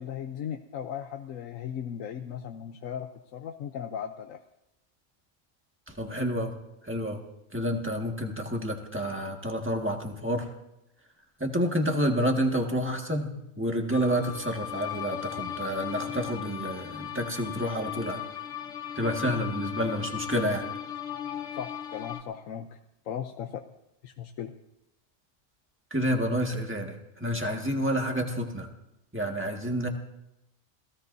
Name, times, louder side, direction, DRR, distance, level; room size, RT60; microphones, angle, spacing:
voice 1, 0.0-4.4 19.3-19.4 21.5-22.8 23.0-23.7 24.0-24.5, left 9 dB, 90° left, 5 dB, 1.1 m, -37 dB
voice 2, 5.9-6.5 6.8-7.2 7.5-10.5 11.4-18.2 18.9-20.6 25.9-28.7 29.1-29.9, equal, 10° right, 2 dB, 1.7 m, -29 dB
sound 1, 13.9-22.2, left 10 dB, 70° left, 1.5 m, -37 dB
28.5 x 17.0 x 2.7 m, 0.88 s
omnidirectional pair, 1.3 m